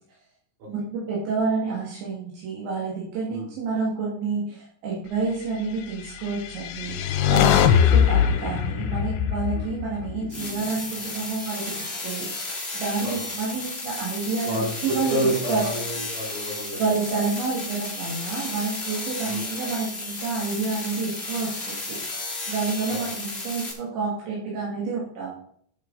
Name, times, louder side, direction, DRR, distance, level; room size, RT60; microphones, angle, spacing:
voice 1, 0.7-7.0 7.3-15.2 15.5-15.6 16.8-22.0 22.5-25.3, right 4 dB, 75° right, -5 dB, 4.4 m, -29 dB
sound 1, 6.3-10.6, left 9 dB, 80° left, 2.9 m, -21 dB
sound 2, 10.3-23.7, left 2 dB, 30° left, 1.1 m, -33 dB
voice 2, 14.4-16.8 19.3-19.5 22.9-23.1, right 1 dB, 55° right, -3 dB, 5.5 m, -29 dB
13.0 x 7.7 x 4.0 m, 0.62 s
omnidirectional pair, 5.3 m